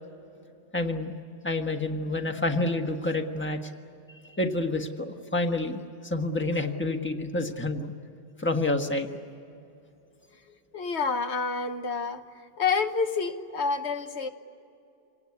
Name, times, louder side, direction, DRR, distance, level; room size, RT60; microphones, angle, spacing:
voice 1, 0.7-1.1 1.4-3.6 4.3-7.9 8.4-9.1, left 2 dB, 10° left, 3 dB, 1.4 m, -28 dB
voice 2, 10.7-12.2 12.6-14.3, left 5 dB, 75° left, 7 dB, 1.4 m, -28 dB
27.0 x 18.5 x 9.7 m, 2.6 s
omnidirectional pair, 1.1 m